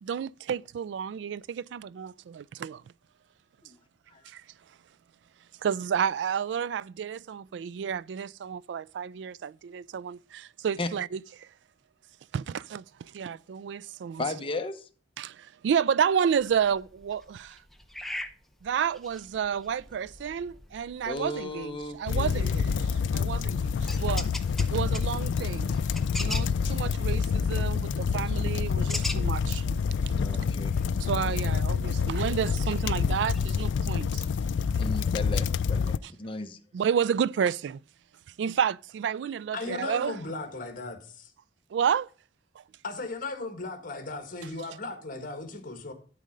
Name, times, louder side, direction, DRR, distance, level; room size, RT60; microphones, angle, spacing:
voice 1, 0.0-2.8 4.3-4.4 5.6-11.2 12.3-12.8 13.1-14.2 15.2-17.6 18.6-24.3 24.6-25.8 26.2-29.6 31.0-34.2 36.7-37.8 38.4-40.1 41.7-42.1, right 7 dB, 75° right, 0.3 m, -30 dB
voice 2, 14.2-14.9 21.0-22.6 26.4-26.8 30.1-31.0 33.3-33.5 34.8-36.6, left 2 dB, 30° left, 0.8 m, -36 dB
sound 1, 16.4-33.7, left 1 dB, ahead, 0.7 m, -44 dB
sound 2, 22.1-36.0, left 6 dB, 80° left, 0.3 m, -27 dB
voice 3, 39.5-41.3 42.8-45.9, left 3 dB, 50° left, 1.6 m, -36 dB
12.0 x 4.2 x 5.1 m
head